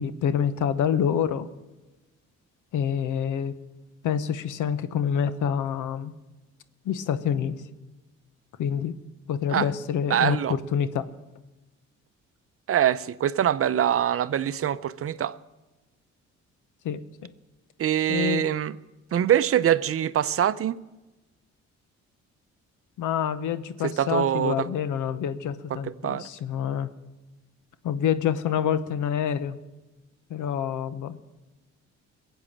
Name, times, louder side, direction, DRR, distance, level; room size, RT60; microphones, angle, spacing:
voice 1, 0.0-1.5 2.7-3.5 4.0-6.1 6.8-7.6 8.6-8.9 9.3-11.0 16.8-17.0 18.1-18.4 23.0-26.9 27.8-29.6 30.3-31.2, left 8 dB, 80° left, 1.0 m, -27 dB
voice 2, 10.1-10.5 12.7-15.3 17.8-18.7 19.1-20.7 24.0-24.7 25.7-25.8 26.0-26.2, right 10 dB, 50° right, 0.6 m, -24 dB
21.0 x 8.1 x 7.3 m
cardioid pair, 90°, 30 cm